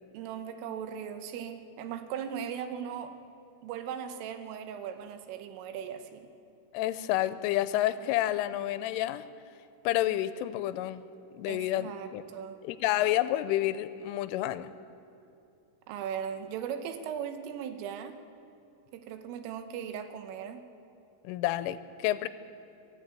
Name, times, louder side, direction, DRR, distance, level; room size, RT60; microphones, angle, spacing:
voice 1, 0.1-3.2 3.6-6.3 11.5-12.6 15.9-18.2 18.9-20.6, right 8 dB, 85° right, 8 dB, 3.6 m, -38 dB
voice 2, 6.7-9.2 9.8-11.1 11.3-12.2 12.6-14.7 21.2-22.3, left 14 dB, 85° left, 13 dB, 3.1 m, -29 dB
23.5 x 12.5 x 8.9 m, 2.6 s
omnidirectional pair, 5.7 m